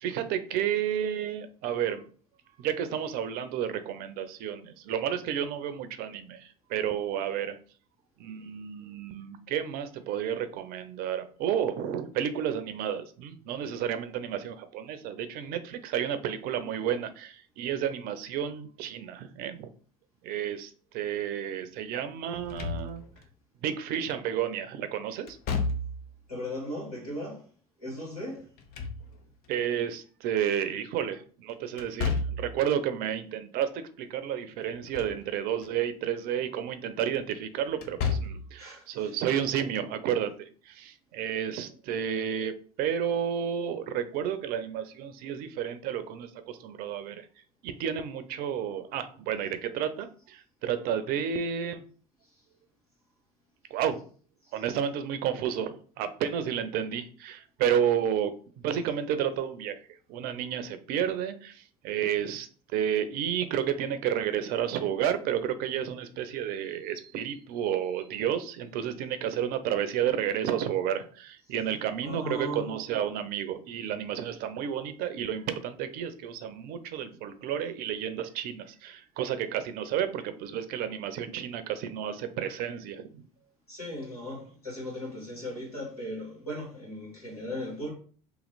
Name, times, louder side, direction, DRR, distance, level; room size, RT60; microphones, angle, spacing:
voice 1, 0.0-2.0 2.6-7.6 8.2-19.7 20.2-23.0 23.6-25.4 29.5-47.3 47.6-51.8 53.7-54.0 54.5-59.8 60.1-83.2, right 9 dB, 55° right, 0.6 m, -31 dB
Slam / Thump thud, 22.3-23.3 25.3-26.2 28.4-29.5 31.8-32.6 34.6-35.2 35.6-35.7 37.7-38.5, left 4 dB, 55° left, 0.7 m, -32 dB
voice 2, 26.3-27.5 27.8-28.5 38.6-39.1 52.3-52.4 54.4-54.5 72.0-72.6 83.7-87.9, left 1 dB, 90° left, 1.8 m, -37 dB
3.0 x 2.8 x 4.0 m
figure-of-eight pair, 65°, 19 cm